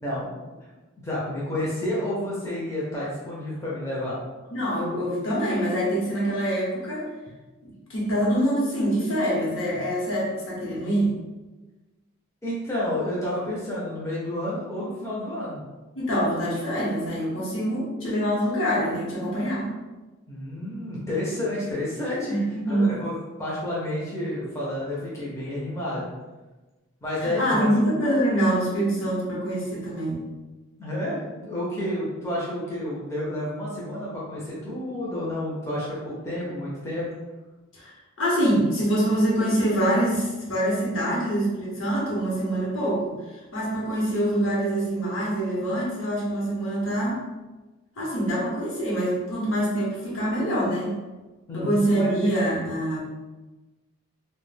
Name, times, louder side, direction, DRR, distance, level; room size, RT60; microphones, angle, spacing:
voice 1, 0.0-0.5 1.0-4.2 12.4-15.6 20.3-23.1 23.4-26.1 27.0-27.7 30.8-37.1 51.5-52.1, left 1 dB, 15° left, -7 dB, 0.5 m, -30 dB
voice 2, 4.5-7.1 7.9-11.1 15.9-19.7 22.3-23.0 27.2-30.2 37.7-47.2 48.0-51.0 51.5-53.0, right 1 dB, 70° left, -5 dB, 0.9 m, -25 dB
2.2 x 2.1 x 3.2 m, 1.2 s
head